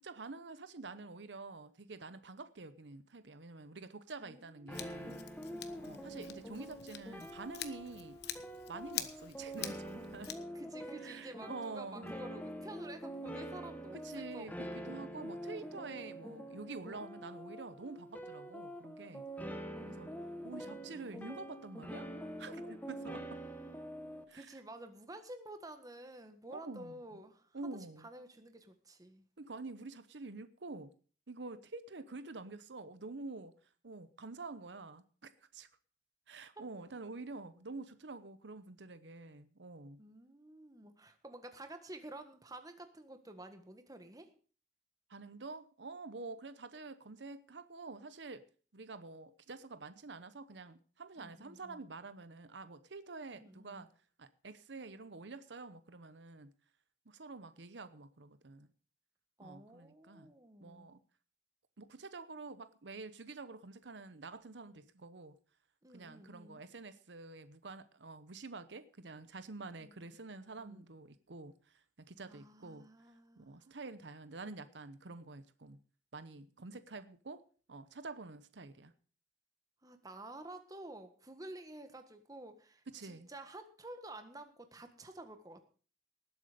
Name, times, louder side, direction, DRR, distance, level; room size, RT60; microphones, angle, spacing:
voice 1, 0.0-5.2 5.8-8.2 8.7-10.3 11.0-12.1 14.0-19.2 19.8-20.1 20.4-22.1 22.4-23.4 24.3-24.4 26.5-26.9 27.5-28.1 29.4-30.9 31.3-33.5 33.8-35.7 36.3-40.0 45.1-48.5 48.7-53.9 54.2-56.5 57.1-58.7 59.4-60.3 60.6-61.0 61.8-65.4 65.9-72.9 73.4-75.8 76.1-77.4 77.7-78.9 82.9-83.3, right 3 dB, 85° right, 0.9 m, -48 dB
voice 2, 4.2-6.4 10.5-15.1 19.6-21.1 23.0-23.6 24.3-27.7 28.0-29.3 36.5-36.6 40.0-44.3 51.2-51.9 53.3-53.9 59.4-60.9 65.8-66.6 69.8-70.2 70.6-70.9 72.3-73.7 79.8-85.6, right 1 dB, 20° right, 1.6 m, -51 dB
Scissors, 4.7-10.4, left 11 dB, 65° left, 1.2 m, -46 dB
sound 1, 4.7-24.2, equal, 10° left, 1.3 m, -45 dB
19.0 x 8.0 x 5.1 m
head